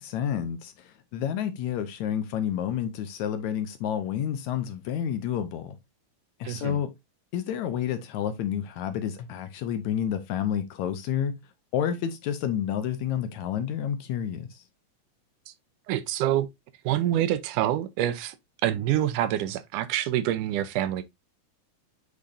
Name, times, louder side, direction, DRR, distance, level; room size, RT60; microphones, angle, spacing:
voice 1, 0.0-5.8 6.4-6.9 7.3-11.4 11.7-14.6, left 9 dB, 75° left, 1.9 m, -30 dB
voice 2, 6.4-6.8 15.5-15.6 15.9-16.5 16.8-18.4 18.6-21.0, right 12 dB, 80° right, 2.1 m, -26 dB
8.6 x 4.8 x 2.6 m
omnidirectional pair, 3.8 m